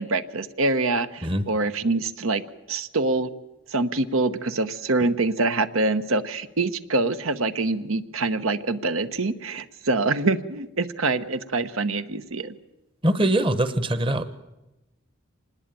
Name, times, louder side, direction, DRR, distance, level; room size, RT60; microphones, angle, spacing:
voice 1, 0.0-2.4 2.7-3.3 3.7-12.5, right 3 dB, 75° right, 10 dB, 1.1 m, -25 dB
voice 2, 13.0-14.4, right 1 dB, 25° right, 12 dB, 1.0 m, -23 dB
25.5 x 20.0 x 9.1 m, 0.99 s
head